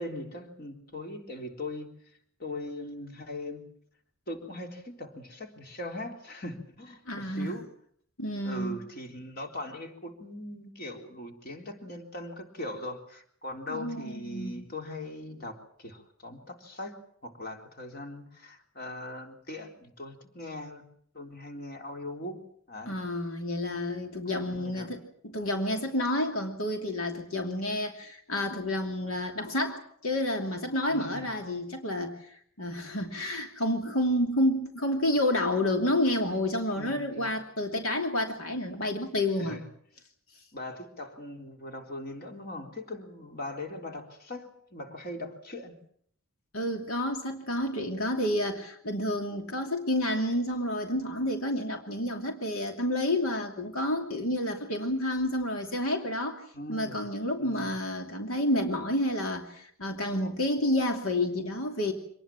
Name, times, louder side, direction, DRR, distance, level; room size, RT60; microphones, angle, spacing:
voice 1, 0.0-1.9 2.4-3.7 4.3-7.6 8.4-20.8 21.1-22.9 24.3-24.9 30.9-31.3 36.7-37.3 39.4-39.7 40.5-45.8 56.5-57.0 57.4-57.7, left 1 dB, 45° left, 3 dB, 3.7 m, -40 dB
voice 2, 7.1-7.5 8.2-8.8 13.7-14.7 22.9-25.0 25.3-39.6 46.5-56.4 56.7-61.9, left 1 dB, 75° left, 3 dB, 2.8 m, -29 dB
26.0 x 19.5 x 7.5 m, 0.65 s
head